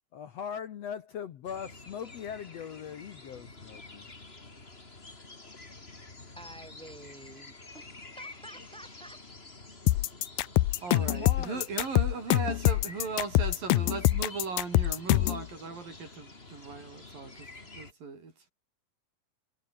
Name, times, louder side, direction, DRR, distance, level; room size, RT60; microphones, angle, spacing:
voice 1, 0.1-4.1 10.9-11.6, left 8 dB, 60° left, 2.0 m, -40 dB
sound 1, 1.4-17.9, left 3 dB, 20° left, 2.8 m, -49 dB
voice 2, 6.3-9.2, right 1 dB, ahead, 4.7 m, -49 dB
sound 2, 9.9-15.4, left 16 dB, 90° left, 2.6 m, -25 dB
voice 3, 10.8-17.5 17.7-18.5, right 4 dB, 80° right, 8.1 m, -38 dB
omnidirectional pair, 3.9 m